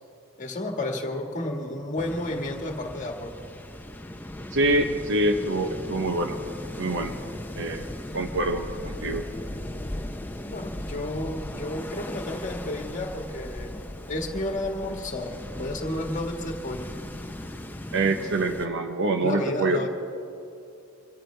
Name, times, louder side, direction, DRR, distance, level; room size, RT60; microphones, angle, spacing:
voice 1, 0.4-3.4 10.4-16.9 19.2-19.9, left 1 dB, 35° left, 3 dB, 1.6 m, -32 dB
sound 1, 2.0-18.7, left 1 dB, 10° left, 0.6 m, -37 dB
voice 2, 4.5-6.4 6.8-7.1 7.6-7.9 8.1-9.2 17.9-19.9, right 2 dB, 60° right, 6 dB, 0.9 m, -25 dB
24.5 x 17.0 x 3.3 m, 2.6 s
head